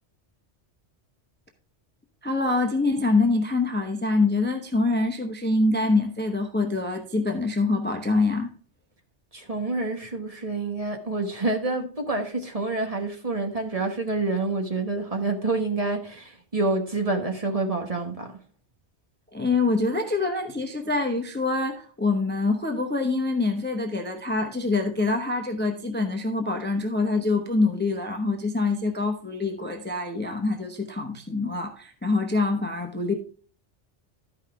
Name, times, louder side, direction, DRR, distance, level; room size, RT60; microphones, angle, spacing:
voice 1, 2.2-8.5 19.3-33.1, left 3 dB, 10° left, 5 dB, 0.7 m, -25 dB
voice 2, 9.3-18.3, right 3 dB, 35° right, 3 dB, 1.2 m, -27 dB
12.5 x 5.5 x 3.5 m, 0.42 s
omnidirectional pair, 1.2 m